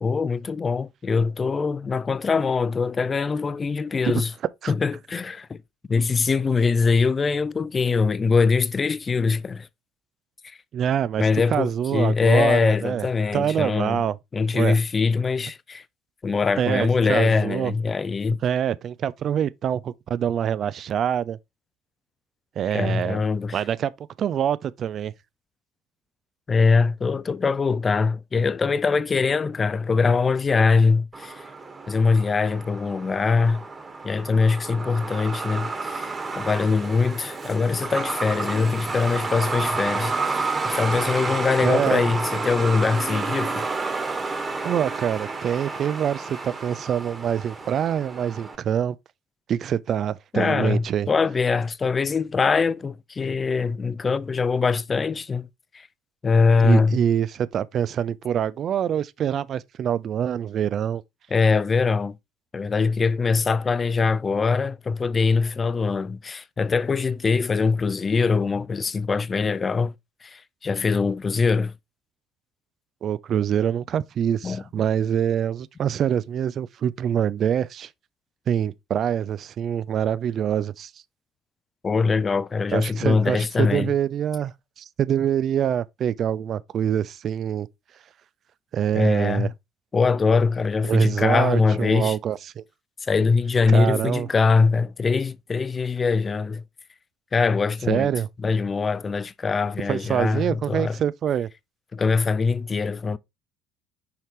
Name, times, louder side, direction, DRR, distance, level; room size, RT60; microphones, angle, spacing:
voice 1, 0.0-4.3 4.7-5.6 5.9-9.7 10.4-10.6 11.2-14.0 14.3-15.8 16.2-18.4 22.7-23.6 26.5-31.4 31.9-33.6 34.0-40.1 40.7-43.7 50.3-55.5 55.7-55.9 56.2-57.0 61.3-62.2 62.5-69.9 70.2-71.7 74.4-74.6 81.8-83.9 88.9-89.5 89.9-92.2 93.1-96.6 97.3-98.1 98.4-101.0 101.9-103.2, left 4 dB, 30° left, 0.5 m, -22 dB
voice 2, 10.7-13.1 13.3-14.2 14.5-14.8 16.6-17.7 18.4-21.4 22.6-23.2 23.5-23.9 24.2-25.1 41.6-42.1 44.6-49.0 49.5-51.1 56.6-61.0 73.0-77.9 78.5-80.9 82.7-87.7 88.7-89.5 90.8-92.6 93.7-94.3 97.9-98.3 99.9-101.5, right 9 dB, 45° right, 0.4 m, -25 dB
Truck, 31.1-48.6, right 3 dB, 25° right, 1.5 m, -30 dB
5.7 x 5.7 x 3.1 m
figure-of-eight pair, 60°, 0 cm